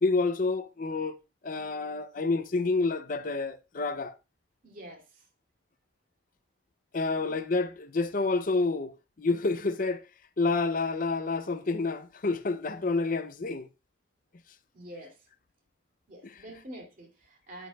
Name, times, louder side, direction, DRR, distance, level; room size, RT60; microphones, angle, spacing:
voice 1, 0.0-1.1 1.4-4.2 6.9-10.1 10.4-13.7, left 3 dB, 45° left, 0.5 m, -28 dB
voice 2, 4.6-5.3 7.1-7.4 14.7-15.3 16.1-17.7, right 1 dB, 45° right, 2.6 m, -47 dB
9.6 x 9.5 x 2.3 m
head